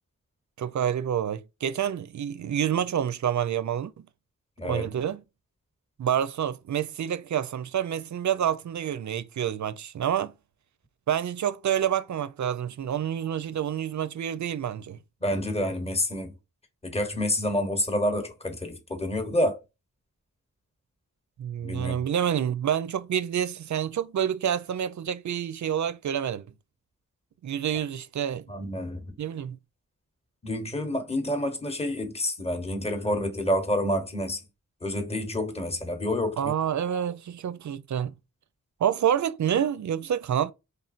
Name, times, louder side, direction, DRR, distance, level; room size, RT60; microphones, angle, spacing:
voice 1, 0.6-3.9 4.6-5.2 6.0-10.3 11.1-15.0 21.4-26.5 27.4-28.5 29.2-29.6 36.4-38.1 38.8-40.5, right 9 dB, 60° right, 0.4 m, -28 dB
voice 2, 4.6-4.9 15.2-16.3 16.8-19.6 21.6-22.0 28.5-29.2 30.4-34.4 34.8-36.5, left 1 dB, 20° left, 0.9 m, -28 dB
4.3 x 3.4 x 2.4 m
wide cardioid pair, 60°, 34 cm